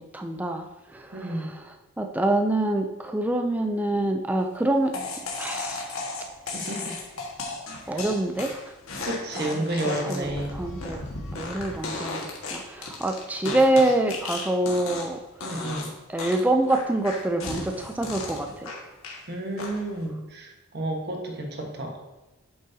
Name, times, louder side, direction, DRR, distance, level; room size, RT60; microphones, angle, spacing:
voice 1, 0.0-5.0 5.4-5.9 7.9-8.5 9.4-11.0 11.3-12.2 12.5-15.2 16.1-18.8, right 1 dB, 5° right, 4 dB, 0.4 m, -26 dB
voice 2, 1.1-1.5 6.5-7.0 7.9-8.1 9.0-10.6 15.4-15.9 19.3-22.0, right 1 dB, 50° right, 2 dB, 1.3 m, -31 dB
sound 1, 4.9-15.2 15.4-15.9 16.2-19.2 19.6-20.0, left 3 dB, 75° left, 1.6 m, -35 dB
8.7 x 7.4 x 2.8 m, 1.1 s
head